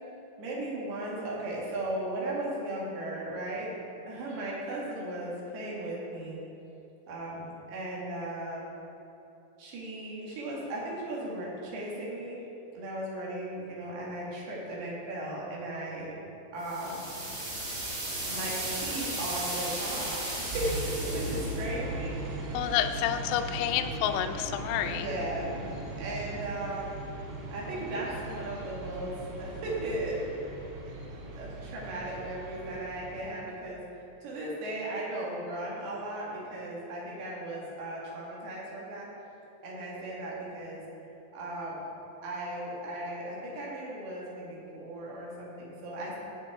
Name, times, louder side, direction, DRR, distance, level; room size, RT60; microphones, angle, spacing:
voice 1, 0.4-3.7 4.1-6.4 7.1-8.7 9.6-12.4 12.8-16.2 16.5-17.1 18.3-22.7 24.8-25.5 26.0-27.1 27.5-30.4 31.4-39.1 39.6-40.8 41.3-41.8 42.2-46.2, right 1 dB, 70° right, -4 dB, 3.6 m, -36 dB
sound 1, 16.6-21.7, right 1 dB, 45° right, 3.2 m, -35 dB
sound 2, 20.5-33.3, right 2 dB, 85° right, 3.5 m, -39 dB
voice 2, 22.5-25.1, left 11 dB, 85° left, 7 dB, 2.2 m, -29 dB
17.5 x 6.1 x 3.5 m, 2.9 s
omnidirectional pair, 4.9 m